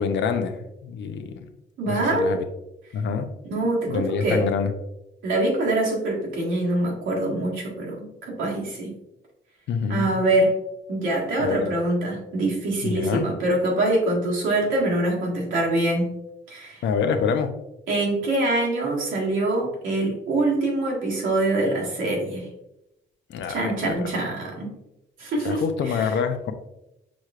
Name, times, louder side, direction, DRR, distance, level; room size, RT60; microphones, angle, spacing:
voice 1, 0.0-1.4 1.9-2.4 2.9-3.3 3.9-4.7 9.7-10.1 11.4-11.8 12.8-13.2 16.8-17.5 23.3-24.1 25.4-26.5, left 6 dB, 65° left, 8 dB, 0.6 m, -26 dB
voice 2, 1.8-2.3 3.5-4.5 5.2-8.9 9.9-10.5 10.9-16.1 16.5-16.8 17.9-22.5 23.5-24.7 25.2-26.1, right 2 dB, 80° right, -3 dB, 1.6 m, -24 dB
6.0 x 3.2 x 2.4 m, 0.87 s
cardioid pair, 90°, 20 cm